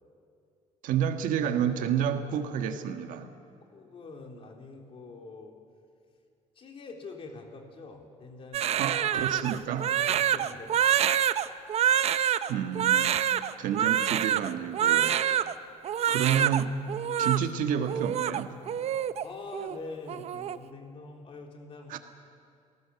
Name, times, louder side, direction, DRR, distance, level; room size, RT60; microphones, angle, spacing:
voice 1, 0.8-3.3 8.8-9.9 12.5-13.2 13.6-15.2 16.1-16.8 17.2-18.5 21.9-22.0, right 8 dB, 85° right, 7 dB, 1.7 m, -29 dB
voice 2, 3.6-5.6 6.6-9.3 10.0-11.3 19.2-22.0, left 3 dB, 45° left, 2 dB, 3.5 m, -45 dB
Crying sobbing, 8.5-15.5 15.8-16.6 16.9-17.4 17.9-19.2 19.5-19.8 20.1-20.6, right 10 dB, 50° right, 0.7 m, -26 dB
28.5 x 18.5 x 7.1 m, 2.4 s
cardioid pair, 135°, 13 cm